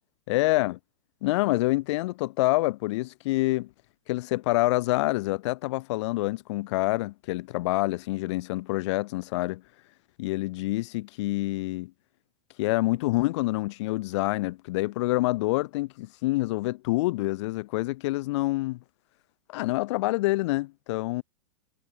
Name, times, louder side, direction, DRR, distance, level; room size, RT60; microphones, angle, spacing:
voice 1, 0.3-0.8 1.2-3.7 4.1-9.6 10.2-11.9 12.6-18.8 19.5-21.2, left 20 dB, 45° left, 0.4 m, -27 dB
figure-of-eight pair, 105°, 21 cm